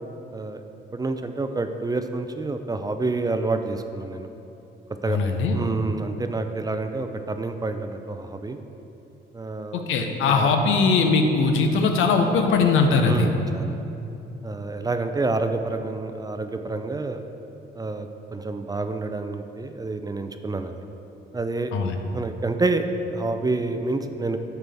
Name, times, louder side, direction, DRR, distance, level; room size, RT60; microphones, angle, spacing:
voice 1, 0.3-0.6 0.9-4.3 5.0-5.2 5.5-8.6 9.3-10.5 13.0-13.7 14.4-17.2 17.7-20.8 21.3-21.7 22.1-24.4, right 3 dB, 20° right, 7 dB, 0.4 m, -28 dB
voice 2, 5.1-5.6 9.7-13.3 21.7-22.0, left 4 dB, 85° left, 4 dB, 0.8 m, -20 dB
9.2 x 6.7 x 3.5 m, 2.9 s
cardioid pair, 90°, 20 cm